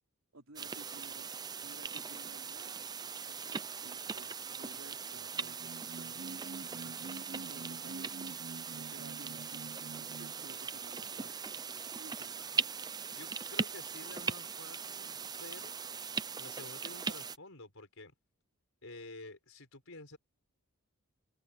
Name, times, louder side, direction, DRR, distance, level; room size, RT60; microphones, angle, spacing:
voice 1, 0.3-1.3 1.6-2.8 3.1-6.4 6.7-8.3 8.7-11.5 11.9-12.4, right 2 dB, 70° right, 3.5 m, -56 dB
sound 1, 0.6-17.4, right 5 dB, 20° right, 0.5 m, -40 dB
sound 2, 5.2-10.5, right 3 dB, 50° right, 0.8 m, -47 dB
voice 2, 13.1-18.1 18.8-20.2, left 2 dB, 65° left, 5.3 m, -51 dB
head